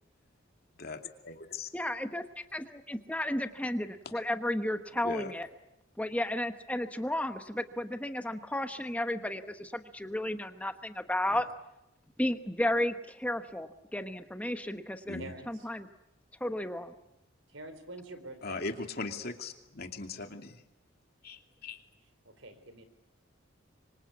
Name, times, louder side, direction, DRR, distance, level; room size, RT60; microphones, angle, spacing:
voice 1, 0.8-1.7 5.0-5.3 15.1-15.3 18.4-20.6 21.2-21.8, left 3 dB, 50° left, 5 dB, 2.6 m, -39 dB
voice 2, 1.7-2.2 2.5-5.5 6.0-11.5 12.2-15.2 15.5-15.9 16.4-16.9, left 1 dB, 5° left, 8 dB, 1.0 m, -33 dB
voice 3, 15.2-15.7 17.5-18.6 22.2-22.8, right 2 dB, 80° right, 10 dB, 4.2 m, -46 dB
25.5 x 25.5 x 8.4 m, 0.89 s
head